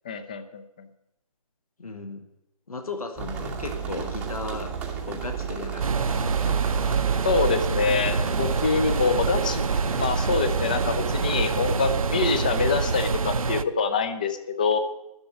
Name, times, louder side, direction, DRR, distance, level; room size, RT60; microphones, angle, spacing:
voice 1, 0.1-0.9 7.2-9.6 10.0-14.8, left 5 dB, 15° left, 9 dB, 0.4 m, -25 dB
voice 2, 1.8-2.2 2.7-4.7 5.1-6.6, left 3 dB, 70° left, 6 dB, 1.5 m, -36 dB
sound 1, 3.2-12.6, right 7 dB, 5° right, 0.8 m, -32 dB
sound 2, 5.8-13.6, right 4 dB, 65° right, 0.6 m, -26 dB
11.5 x 6.8 x 9.4 m, 0.90 s
figure-of-eight pair, 150°, 19 cm